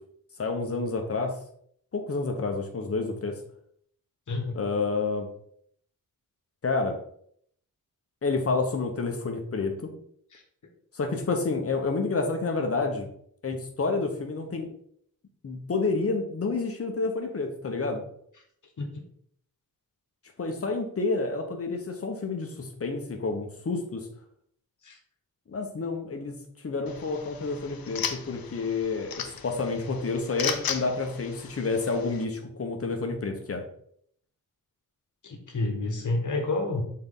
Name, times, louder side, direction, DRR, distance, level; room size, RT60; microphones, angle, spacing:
voice 1, 0.4-1.3 1.9-3.4 4.5-5.3 6.6-7.0 8.2-9.9 10.9-13.1 13.4-14.7 15.4-18.0 20.4-24.1 25.5-26.3 26.6-29.1 29.4-33.6, left 3 dB, 40° left, 4 dB, 1.1 m, -29 dB
voice 2, 4.3-4.6 10.3-10.4 18.8-18.9 24.8-25.0 35.2-36.8, left 2 dB, 60° left, 3 dB, 1.4 m, -29 dB
sound 1, 26.9-32.2, left 7 dB, 80° left, 0.8 m, -36 dB
6.3 x 4.3 x 3.9 m, 0.64 s
wide cardioid pair, 160°, 35 cm